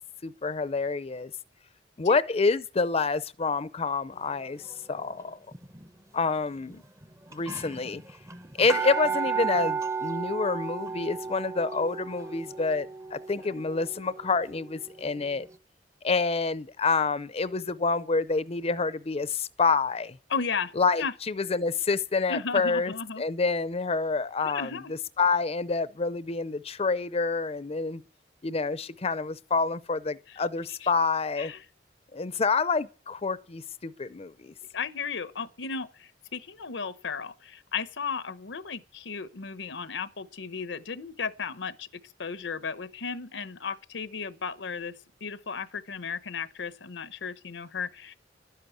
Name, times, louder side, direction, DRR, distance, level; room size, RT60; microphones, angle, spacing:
voice 1, 0.2-1.3 2.0-5.4 6.1-6.8 7.3-8.0 8.6-15.5 16.0-20.2 20.8-24.8 25.2-28.0 28.4-31.5 32.1-34.5, left 4 dB, 35° left, 0.6 m, -28 dB
sound 1, 5.5-5.9 6.7-6.8 7.0-7.1 7.3-14.9 15.4-15.5, right 5 dB, 15° right, 0.8 m, -34 dB
voice 2, 20.3-21.1 22.3-23.2 24.4-24.9 30.3-30.4 30.8-30.9 31.4-31.6 34.7-48.1, left 5 dB, 80° left, 0.9 m, -35 dB
12.0 x 10.0 x 8.1 m
head